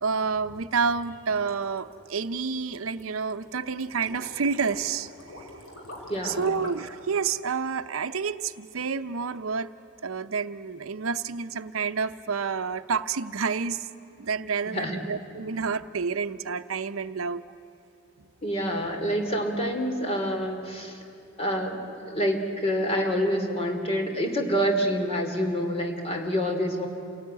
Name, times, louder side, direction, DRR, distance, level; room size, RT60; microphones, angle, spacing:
voice 1, 0.0-5.1 6.2-9.7 10.0-13.9 14.2-17.4, right 5 dB, 80° right, 11 dB, 0.7 m, -29 dB
sound 1, 0.9-7.0, left 1 dB, 70° left, 5.0 m, -45 dB
voice 2, 6.1-6.5 14.7-15.0 18.4-21.0 21.4-26.9, equal, 30° left, 4 dB, 2.8 m, -27 dB
28.0 x 17.5 x 9.7 m, 2.8 s
head